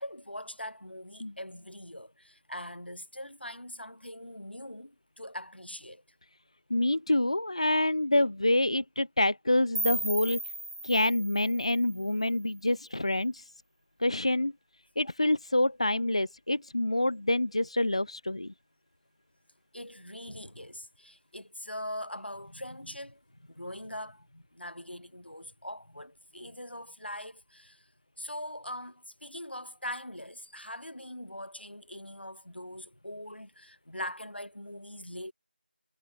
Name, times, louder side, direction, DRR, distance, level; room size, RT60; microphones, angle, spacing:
voice 1, 0.0-6.0 15.0-15.1 19.7-27.9 28.2-35.3, left 1 dB, 75° left, 6.5 m, -42 dB
voice 2, 6.7-10.4 10.8-13.4 14.0-14.5 15.0-18.5, left 1 dB, 35° left, 0.5 m, -27 dB
sound 1, 9.7-12.7, right 1 dB, 30° right, 0.3 m, -37 dB
figure-of-eight pair, 175°, 6 cm